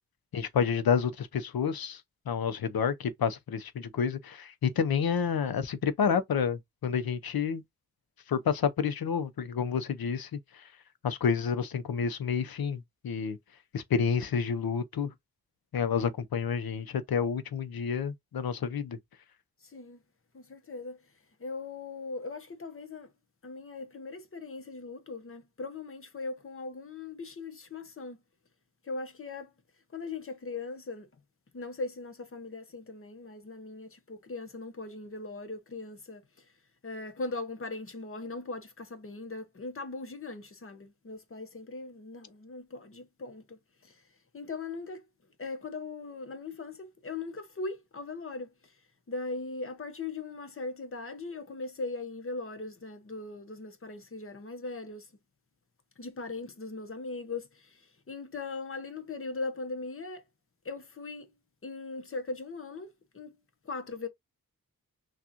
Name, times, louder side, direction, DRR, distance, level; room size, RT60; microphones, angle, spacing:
voice 1, 0.3-2.0 2.3-7.6 8.3-10.6 11.0-13.4 13.7-15.1 15.7-19.0, left 6 dB, 85° left, 0.7 m, -29 dB
voice 2, 19.6-20.0 20.3-21.0 21.4-23.1 23.4-28.2 28.8-29.5 29.9-31.1 31.5-36.4 36.8-44.0 44.3-45.1 45.4-48.7 49.1-55.1 56.0-60.2 60.6-61.3 61.6-62.9 63.1-63.4 63.6-64.1, left 3 dB, 35° left, 0.9 m, -39 dB
6.1 x 2.4 x 2.9 m
wide cardioid pair, 160°, 36 cm